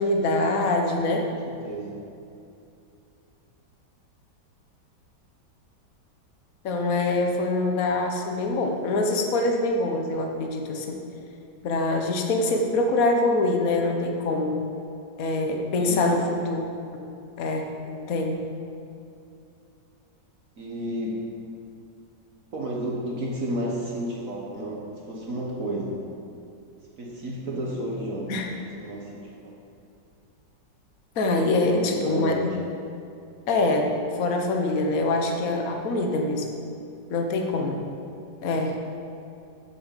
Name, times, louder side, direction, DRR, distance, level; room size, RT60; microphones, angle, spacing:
voice 1, 0.0-1.3 6.6-11.0 11.6-14.5 15.2-16.6 17.0-17.1 17.4-18.4 28.3-28.5 31.2-32.3 33.5-33.9 34.2-36.4 37.1-37.8 38.4-38.9, left 2 dB, 55° left, 2 dB, 1.5 m, -24 dB
voice 2, 1.5-2.0 15.7-16.3 20.6-21.3 22.5-26.0 27.0-29.5 31.7-32.6 37.4-37.7, equal, 50° right, -3 dB, 1.6 m, -32 dB
8.7 x 7.2 x 7.5 m, 2.6 s
omnidirectional pair, 1.9 m